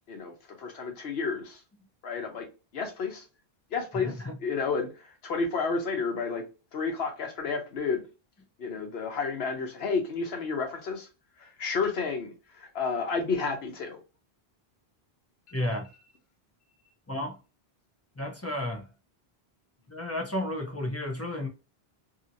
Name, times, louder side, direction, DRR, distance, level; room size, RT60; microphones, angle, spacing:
voice 1, 0.6-1.6 2.0-2.5 2.7-3.2 3.7-6.4 6.7-8.0 8.6-11.1 11.4-14.0, left 4 dB, 80° left, 1.0 m, -31 dB
voice 2, 3.9-4.4 15.5-15.9 17.1-17.4 18.2-18.9 19.9-21.5, left 1 dB, 20° left, 0.5 m, -32 dB
2.8 x 2.7 x 2.6 m
omnidirectional pair, 1.0 m